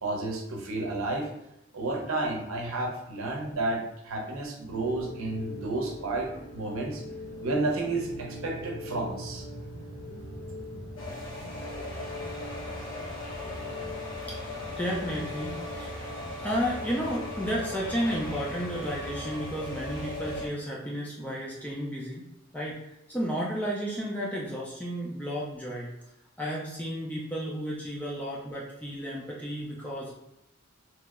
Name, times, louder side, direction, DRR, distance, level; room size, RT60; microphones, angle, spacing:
voice 1, 0.0-1.3 1.7-7.0 7.4-9.5, right 2 dB, 75° right, 1 dB, 0.7 m, -31 dB
sound 1, 4.7-20.4, equal, 90° left, 1.4 m, -41 dB
sound 2, 11.0-20.5, left 2 dB, 60° left, 0.8 m, -39 dB
voice 2, 14.8-16.1 16.4-22.3 22.5-25.9 26.4-30.1, equal, 5° left, -5 dB, 0.4 m, -32 dB
2.9 x 2.1 x 3.5 m, 0.85 s
head